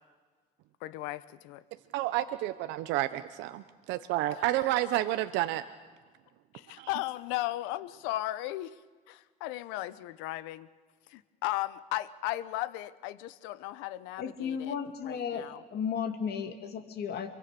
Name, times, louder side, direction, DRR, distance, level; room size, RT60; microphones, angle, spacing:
voice 1, 0.8-1.6 4.3-4.6 6.5-8.7 9.1-10.7 11.1-14.8 15.0-15.6, left 16 dB, 85° left, 16 dB, 0.8 m, -36 dB
voice 2, 1.9-5.6 6.8-6.9, right 15 dB, 80° right, 11 dB, 0.8 m, -30 dB
voice 3, 14.2-17.3, left 7 dB, 60° left, 6 dB, 2.6 m, -34 dB
25.0 x 23.5 x 6.8 m, 1.4 s
supercardioid pair, 85°, 18 cm